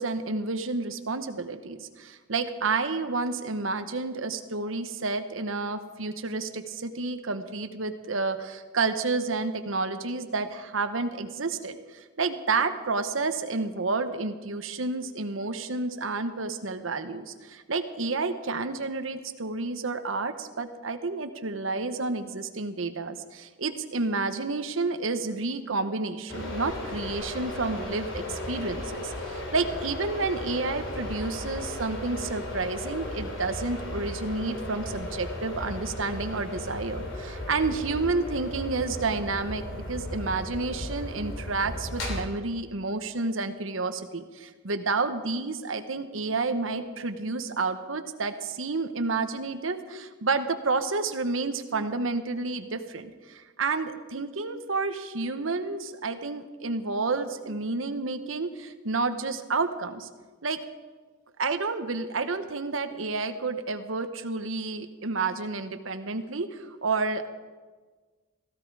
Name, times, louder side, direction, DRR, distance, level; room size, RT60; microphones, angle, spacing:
voice 1, 0.0-60.1 60.4-60.6 61.4-67.3, right 3 dB, 80° right, 9 dB, 1.1 m, -30 dB
sound 1, 26.3-42.2, left 1 dB, 75° left, 3.4 m, -36 dB
17.0 x 15.5 x 4.8 m, 1.4 s
head